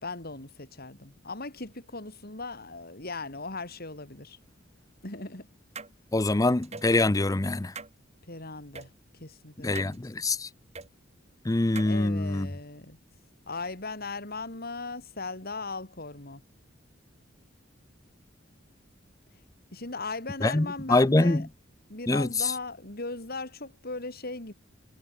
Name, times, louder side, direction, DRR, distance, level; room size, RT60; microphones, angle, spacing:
voice 1, 0.0-4.4 5.0-5.5 8.3-8.9 9.2-10.0 11.8-13.0 13.5-16.4 19.7-21.5 21.9-24.5, left 3 dB, 50° left, 4.6 m, -38 dB
sound 1, 5.8-5.9 6.6-6.9 7.8-7.9 8.8-8.9 9.8-10.0 10.8-10.9 11.8-11.9, right 4 dB, 35° right, 3.8 m, -41 dB
voice 2, 6.1-7.7 9.6-10.5 11.4-12.5 20.4-21.5 22.1-22.5, left 2 dB, 20° left, 0.6 m, -24 dB
head